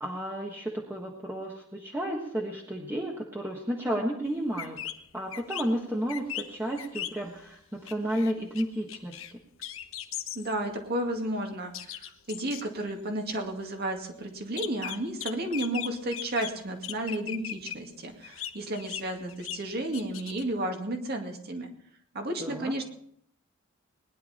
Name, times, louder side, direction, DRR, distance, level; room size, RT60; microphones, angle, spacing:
voice 1, 0.0-4.8 5.1-9.2 22.4-22.7, equal, 10° right, -2 dB, 1.4 m, -32 dB
sound 1, 4.2-4.3 4.6-5.0 5.3-5.7 6.1-7.4 7.9-8.6 8.9-9.3 9.6-10.5 10.9-11.0 11.7-12.6 14.6-16.6 16.8-17.7 18.1-19.6 19.9-20.5, left 10 dB, 70° left, 1.0 m, -38 dB
voice 2, 10.3-21.7 22.1-22.8, right 1 dB, 50° right, 3 dB, 2.2 m, -32 dB
20.5 x 11.0 x 4.3 m, 0.69 s
head